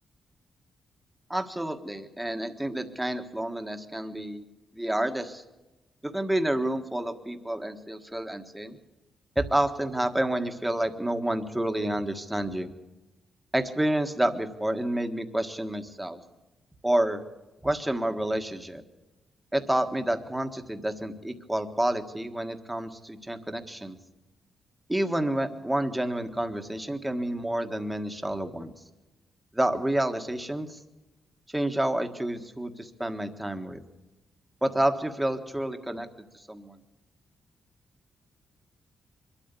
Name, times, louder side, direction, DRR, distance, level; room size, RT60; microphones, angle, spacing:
voice 1, 1.3-4.4 4.7-5.4 6.0-8.8 9.3-12.7 13.5-16.2 16.8-17.2 17.6-18.8 19.5-24.0 24.9-28.7 29.5-30.8 31.5-33.8 34.6-36.1 36.3-36.8, right 1 dB, 5° right, 6 dB, 1.5 m, -29 dB
24.0 x 13.0 x 8.4 m, 1.1 s
wide cardioid pair, 170°, 0 cm